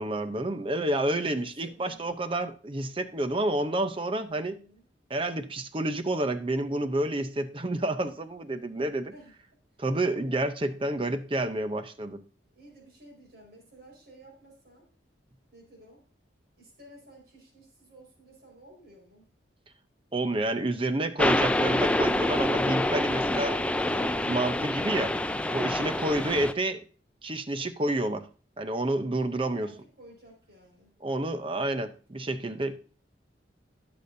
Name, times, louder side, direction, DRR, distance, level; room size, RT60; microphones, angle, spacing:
voice 1, 0.0-4.6 5.1-9.1 9.8-12.2 20.1-25.1 25.5-26.8 27.2-28.3 28.6-29.7 31.0-32.8, right 1 dB, 30° right, 10 dB, 0.7 m, -29 dB
voice 2, 1.1-2.1 4.3-4.8 9.1-9.3 10.2-10.8 12.5-14.9 15.5-16.0 16.6-19.3 29.4-30.9 31.5-31.9, right 1 dB, 60° right, -1 dB, 5.0 m, -53 dB
sound 1, 21.2-26.5, left 1 dB, 5° left, 0.4 m, -27 dB
18.0 x 6.9 x 2.7 m, 0.38 s
head